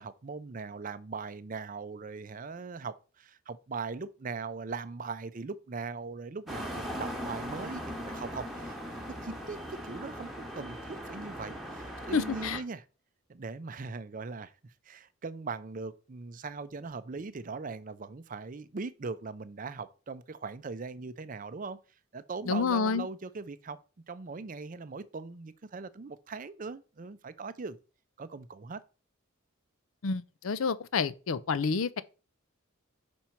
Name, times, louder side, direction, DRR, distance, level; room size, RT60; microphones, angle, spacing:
voice 1, 0.0-12.8 13.3-14.5 14.9-21.8 22.1-23.8 24.1-27.8 28.2-28.8, right 4 dB, 40° right, 0.5 m, -40 dB
sound 1, 6.5-12.6, equal, ahead, 1.2 m, -39 dB
voice 2, 12.1-12.6 22.5-23.1 30.0-32.0, left 5 dB, 75° left, 0.5 m, -29 dB
5.2 x 4.4 x 5.7 m
head